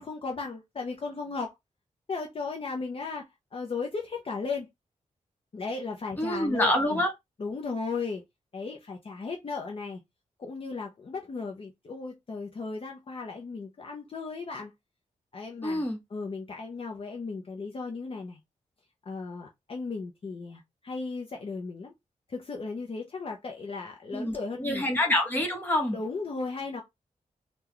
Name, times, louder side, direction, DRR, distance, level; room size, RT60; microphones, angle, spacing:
voice 1, 0.0-1.5 2.1-3.3 3.5-4.7 5.5-7.0 7.4-8.2 8.5-10.0 10.4-14.7 15.3-15.8 16.1-18.4 19.1-21.9 22.3-24.8 25.9-26.8, left 4 dB, 45° left, 0.6 m, -36 dB
voice 2, 6.2-7.1 15.6-16.0 24.1-26.0, left 1 dB, 15° left, 1.1 m, -27 dB
3.8 x 2.3 x 3.0 m
wide cardioid pair, 140°, 13 cm